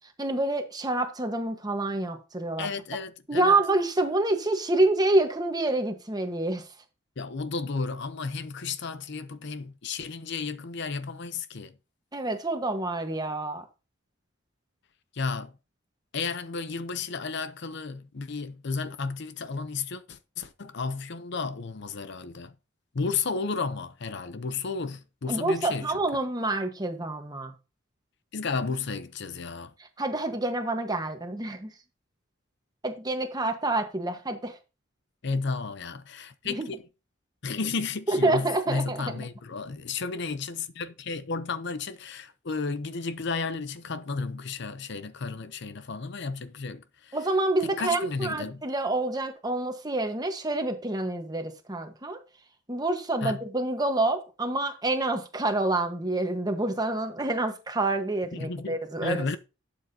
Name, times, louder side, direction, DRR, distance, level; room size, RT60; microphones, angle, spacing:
voice 1, 0.2-2.7 3.3-6.6 12.1-13.6 25.3-27.5 30.0-31.7 32.8-34.6 36.4-36.7 38.1-39.3 47.1-52.2 52.7-59.4, right 2 dB, 20° right, 1.3 m, -27 dB
voice 2, 2.6-3.5 7.2-11.7 15.1-15.5 16.1-22.5 22.9-25.9 28.3-29.7 35.2-36.8 37.4-47.2 47.6-48.6 53.2-53.4 58.3-59.4, left 4 dB, 60° left, 0.7 m, -33 dB
12.0 x 7.2 x 2.8 m
head